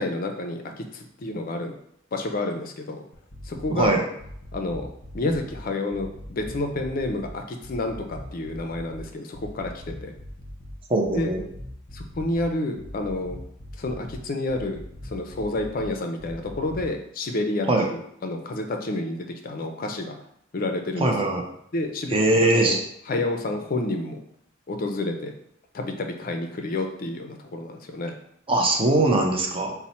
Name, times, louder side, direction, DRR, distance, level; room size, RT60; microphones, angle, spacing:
voice 1, 0.0-1.7 2.1-3.0 3.4-4.0 4.5-4.9 5.1-10.1 11.1-11.3 11.9-13.4 13.8-20.2 20.5-21.1 21.7-22.8 23.1-24.2 24.7-25.3 25.7-28.2, left 2 dB, 45° left, 4 dB, 0.4 m, -29 dB
sound 1, 3.1-3.9 4.2-5.6 5.9-7.3 7.6-9.0 9.3-10.7 11.0-12.4 12.8-14.2 14.5-15.9 16.2-16.9, left 1 dB, 30° left, 0.9 m, -41 dB
voice 2, 3.7-4.0 10.9-11.4 17.7-17.9 21.0-21.4 22.1-22.8 28.5-29.7, right 2 dB, 25° right, 2 dB, 0.6 m, -21 dB
4.1 x 2.0 x 4.2 m, 0.72 s
head